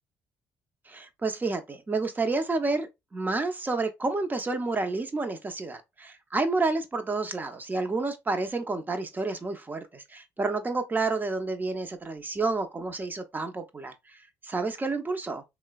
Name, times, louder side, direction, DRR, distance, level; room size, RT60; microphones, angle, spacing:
voice 1, 0.9-15.4, right 3 dB, 25° right, 0.6 m, -30 dB
3.1 x 2.1 x 2.3 m
hypercardioid pair, 60°, 7 cm